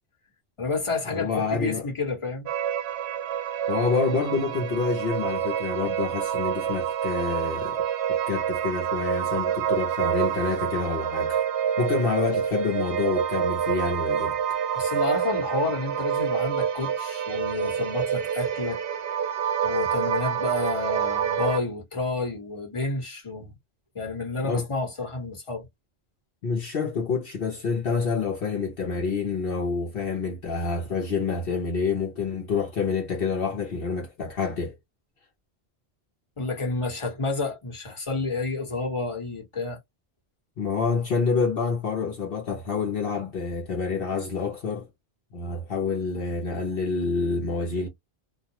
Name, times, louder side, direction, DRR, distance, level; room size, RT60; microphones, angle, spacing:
voice 1, 0.6-2.5 14.7-18.8 19.6-23.5 23.9-25.7 36.4-39.8, left 3 dB, 30° left, 1.1 m, -30 dB
voice 2, 1.1-1.9 3.7-11.4 11.8-14.4 24.4-24.7 26.4-34.8 40.6-44.9 45.3-47.9, left 4 dB, 60° left, 0.9 m, -27 dB
sound 1, 2.5-21.6, right 8 dB, 65° right, 0.7 m, -27 dB
2.4 x 2.2 x 2.8 m
omnidirectional pair, 1.1 m